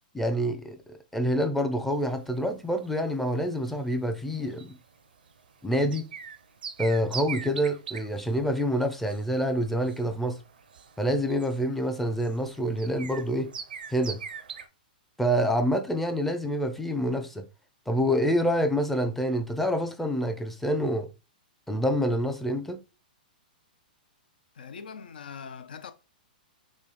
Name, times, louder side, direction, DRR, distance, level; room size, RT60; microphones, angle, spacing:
voice 1, 0.1-4.8 5.6-6.1 6.8-10.4 11.0-13.5 13.9-14.2 15.2-17.4 17.9-21.1 21.7-22.8, equal, 5° left, 0.5 m, -27 dB
sound 1, 1.9-14.7, right 6 dB, 80° right, 0.5 m, -43 dB
voice 2, 24.5-25.9, left 6 dB, 75° left, 0.6 m, -42 dB
3.1 x 2.4 x 3.9 m
hypercardioid pair, 125°, 5 cm